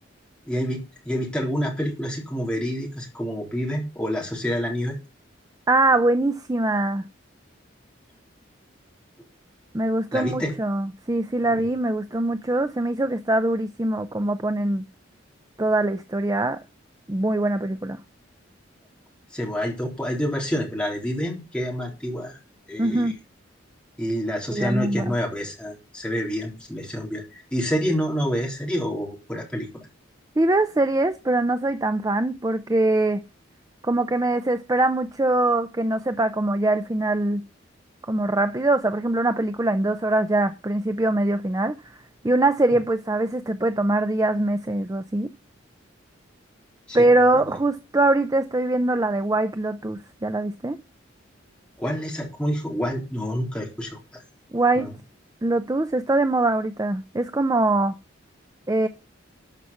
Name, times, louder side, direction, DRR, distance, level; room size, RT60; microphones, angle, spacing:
voice 1, 0.4-5.0 10.1-10.5 11.5-11.6 19.3-22.4 22.7-23.1 24.0-29.8 46.9-47.1 51.8-54.2 54.8-54.9, equal, 5° left, 3.8 m, -28 dB
voice 2, 5.7-7.0 9.7-14.8 15.6-16.6 17.1-18.0 22.8-23.2 24.5-25.1 30.4-33.2 33.8-37.4 38.1-41.7 42.2-45.3 46.9-50.8 54.5-54.9 55.4-58.0 58.7-58.9, right 2 dB, 20° right, 0.5 m, -23 dB
12.5 x 5.8 x 7.0 m
head